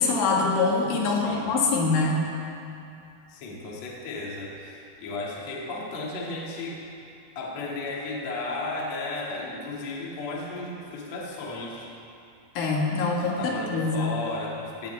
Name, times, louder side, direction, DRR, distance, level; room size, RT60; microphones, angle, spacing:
voice 1, 0.0-2.2 12.6-14.2, left 3 dB, 80° left, -2 dB, 4.1 m, -24 dB
voice 2, 1.1-1.6 3.3-6.8 7.4-11.9 13.2-14.9, left 2 dB, 45° left, -3 dB, 2.5 m, -34 dB
17.5 x 17.5 x 3.4 m, 2.7 s
omnidirectional pair, 5.5 m